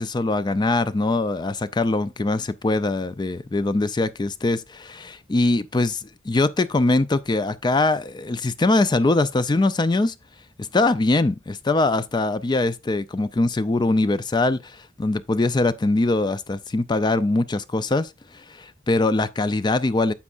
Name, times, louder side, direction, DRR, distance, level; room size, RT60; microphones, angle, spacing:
voice 1, 0.0-10.1 10.6-18.1 18.5-20.1, left 2 dB, 25° left, 0.4 m, -22 dB
9.7 x 7.2 x 2.5 m
head